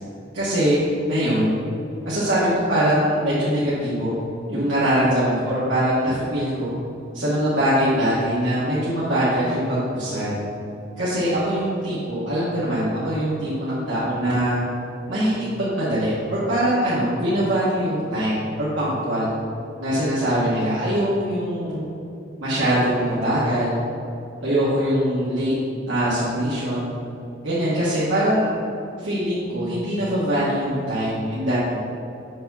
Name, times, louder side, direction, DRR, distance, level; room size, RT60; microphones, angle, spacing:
voice 1, 0.3-0.8 1.1-1.6 2.0-4.1 4.5-6.7 7.1-10.3 11.0-14.6 15.1-19.3 19.8-21.8 22.4-23.8 24.4-25.5 25.9-26.9 27.4-28.6 29.0-31.8, equal, 85° right, -11 dB, 2.1 m, -22 dB
7.8 x 4.2 x 6.9 m, 2.7 s
head